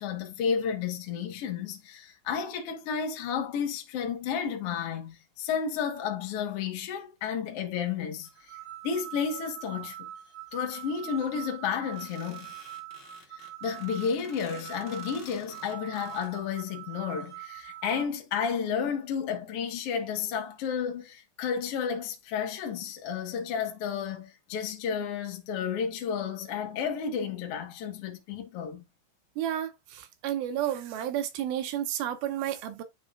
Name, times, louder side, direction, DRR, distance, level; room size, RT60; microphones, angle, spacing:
voice 1, 0.0-8.3 8.8-10.1 10.5-12.5 13.3-28.8, left 7 dB, 80° left, 1.3 m, -32 dB
sound 1, 8.2-18.0, right 13 dB, 15° right, 2.0 m, -44 dB
sound 2, 11.9-16.3, left 1 dB, 20° left, 0.4 m, -51 dB
voice 2, 29.4-32.8, right 11 dB, 75° right, 2.5 m, -31 dB
10.5 x 4.1 x 2.4 m
omnidirectional pair, 4.6 m